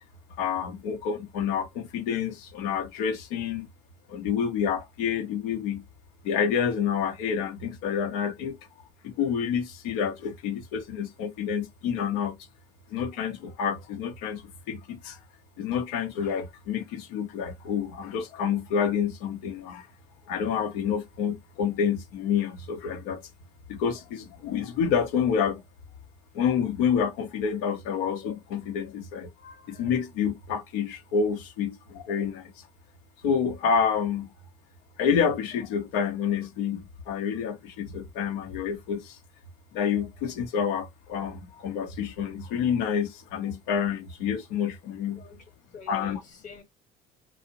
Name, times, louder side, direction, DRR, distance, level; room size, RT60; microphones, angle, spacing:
voice 1, 0.4-3.7 4.1-5.8 6.2-8.6 9.0-12.4 12.9-15.2 15.6-19.9 20.3-23.2 23.7-25.6 26.3-32.5 33.2-34.3 35.0-39.2 39.7-45.2 45.9-46.2, left 7 dB, 85° left, 0.6 m, -28 dB
voice 2, 45.7-46.6, left 7 dB, 50° left, 0.9 m, -45 dB
2.5 x 2.0 x 2.7 m
supercardioid pair, 85°, 17 cm